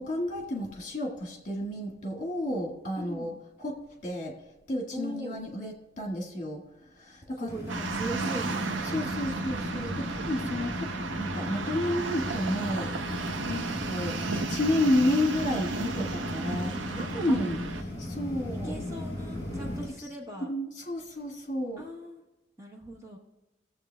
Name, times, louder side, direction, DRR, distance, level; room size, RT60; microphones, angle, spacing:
voice 1, 0.0-4.3 4.7-6.6 7.0-7.5 8.8-13.1 13.5-17.6 18.0-18.7 20.4-21.9, left 1 dB, 40° left, 1 dB, 1.6 m, -31 dB
voice 2, 3.0-3.3 4.9-5.5 7.4-9.3 17.3-17.4 18.6-20.5 21.8-22.2 22.6-23.2, right 1 dB, 15° right, -1 dB, 1.0 m, -40 dB
sound 1, 7.5-19.9, left 1 dB, 20° left, 3.1 m, -36 dB
sound 2, 7.7-17.8, right 4 dB, 85° right, 0.6 m, -34 dB
17.5 x 7.4 x 2.3 m, 1.0 s
head